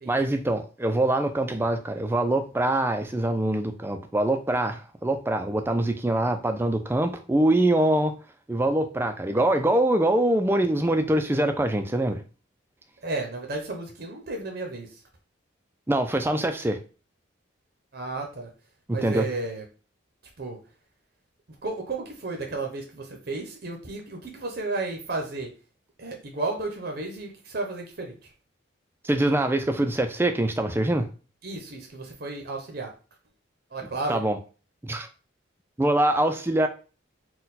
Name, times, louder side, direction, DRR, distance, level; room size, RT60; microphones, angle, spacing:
voice 1, 0.1-8.2 8.5-12.2 15.9-16.8 18.9-19.3 29.0-31.1 34.1-34.4 34.8-35.1 35.8-36.7, right 1 dB, 10° right, 0.3 m, -24 dB
voice 2, 13.0-14.9 17.9-18.5 18.9-19.6 20.4-20.6 21.6-25.5 26.0-28.1 31.4-32.9 33.7-34.2, right 3 dB, 50° right, 0.7 m, -33 dB
4.2 x 2.2 x 4.0 m
head